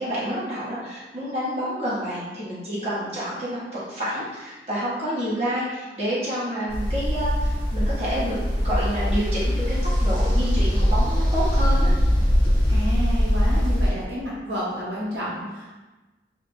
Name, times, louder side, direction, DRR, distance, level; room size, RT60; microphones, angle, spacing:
voice 1, 0.0-11.9, equal, 35° right, -10 dB, 1.1 m, -29 dB
sound 1, 6.7-13.9, equal, 15° left, 1.0 m, -21 dB
voice 2, 12.7-15.8, equal, 85° right, -6 dB, 0.8 m, -30 dB
2.8 x 2.4 x 3.4 m, 1.2 s
head